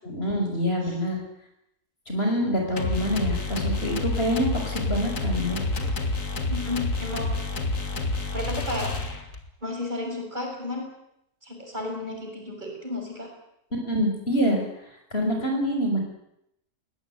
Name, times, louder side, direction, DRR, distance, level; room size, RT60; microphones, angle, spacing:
voice 1, 0.0-1.2 2.1-5.6 13.9-14.6 15.1-16.0, equal, 40° left, 2 dB, 6.1 m, -26 dB
sound 1, 2.8-9.5, left 2 dB, 60° left, 2.7 m, -29 dB
voice 2, 6.5-7.3 8.3-8.9 9.6-10.9 11.4-13.3, left 2 dB, 30° right, 1 dB, 6.7 m, -32 dB
22.5 x 18.5 x 9.3 m, 0.79 s
omnidirectional pair, 1.6 m